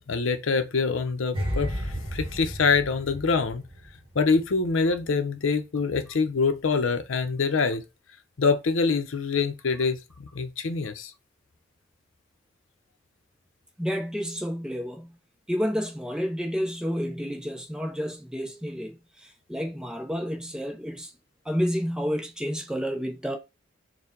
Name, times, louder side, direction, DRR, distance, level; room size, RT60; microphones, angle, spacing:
voice 1, 0.1-3.7 4.1-7.8 8.4-11.1, left 4 dB, 90° left, 0.6 m, -25 dB
sound 1, 1.3-4.5 4.8-5.1, equal, 30° right, 1.3 m, -33 dB
voice 2, 13.8-15.2 15.5-21.1 21.4-23.4, equal, 5° right, 0.6 m, -30 dB
4.5 x 2.2 x 3.7 m
head